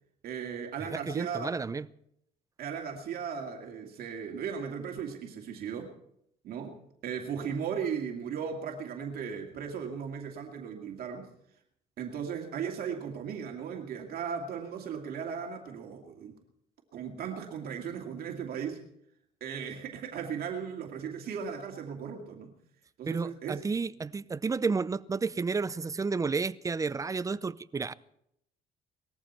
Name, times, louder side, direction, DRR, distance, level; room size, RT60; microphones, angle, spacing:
voice 1, 0.2-1.5 2.6-5.9 6.4-6.8 7.0-11.3 12.0-16.4 16.9-18.8 19.4-22.5 23.0-23.6, right 7 dB, 65° right, 2.4 m, -37 dB
voice 2, 0.9-1.9 23.1-27.9, right 4 dB, 20° right, 0.5 m, -31 dB
20.0 x 14.5 x 4.4 m
cardioid pair, 110°, 17 cm